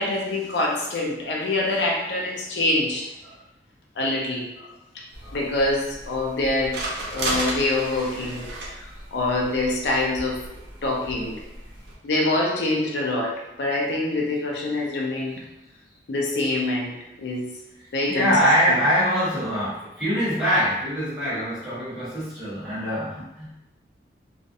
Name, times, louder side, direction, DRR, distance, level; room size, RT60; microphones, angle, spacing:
voice 1, 0.0-3.1 4.0-4.5 5.3-6.8 7.1-8.5 8.8-10.4 10.8-11.4 12.0-15.4 16.1-17.5 17.9-18.4 18.7-18.8, left 2 dB, 80° left, -1 dB, 0.5 m, -25 dB
sound 1, 5.1-11.9, right 1 dB, 85° right, 0.6 m, -34 dB
voice 2, 18.1-23.5, equal, 5° right, -12 dB, 1.0 m, -23 dB
2.5 x 2.0 x 2.5 m, 0.96 s
head